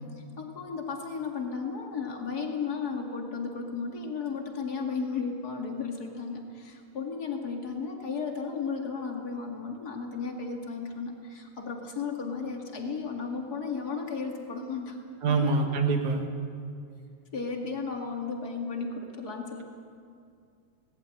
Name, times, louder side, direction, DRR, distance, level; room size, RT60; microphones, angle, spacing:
voice 1, 0.4-15.0 15.3-15.6 17.3-19.6, left 5 dB, 45° left, 2 dB, 1.2 m, -34 dB
voice 2, 15.2-16.3, right 4 dB, 60° right, 4 dB, 2.2 m, -25 dB
19.5 x 18.0 x 8.9 m, 2.4 s
omnidirectional pair, 5.1 m